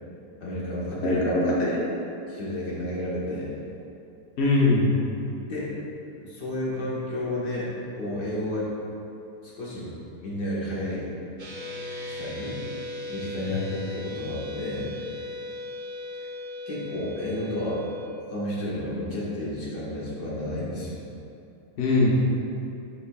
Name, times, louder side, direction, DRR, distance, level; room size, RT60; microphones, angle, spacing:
voice 1, 0.4-1.2 2.3-3.5 5.5-5.7 6.2-7.7 8.0-8.7 9.4-9.9 10.2-11.1 12.1-12.6 13.1-14.9 16.7-17.8 18.3-21.0, left 1 dB, 85° left, -7 dB, 2.1 m, -31 dB
voice 2, 1.0-1.8 4.4-4.9 13.5-13.6 21.8-22.1, left 2 dB, 45° left, -4 dB, 1.1 m, -22 dB
sound 1, 11.4-18.1, left 2 dB, 50° right, 0.5 m, -37 dB
10.0 x 5.4 x 2.3 m, 2.8 s
omnidirectional pair, 1.7 m